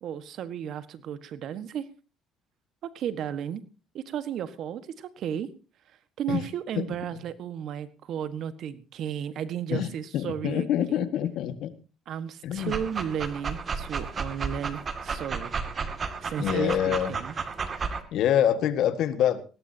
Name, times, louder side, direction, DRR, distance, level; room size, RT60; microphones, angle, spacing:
voice 1, 0.0-1.9 2.8-3.6 3.9-5.5 5.9-11.0 12.1-15.5 16.2-17.4, right 9 dB, 65° right, 13 dB, 1.5 m, -34 dB
voice 2, 10.1-11.7 12.4-12.8 16.4-17.1 18.1-19.4, left 10 dB, 70° left, 11 dB, 1.7 m, -25 dB
Dog, 12.6-18.0, right 5 dB, 40° right, 2.3 m, -33 dB
20.0 x 16.5 x 2.8 m, 0.33 s
supercardioid pair, 75°, 0 cm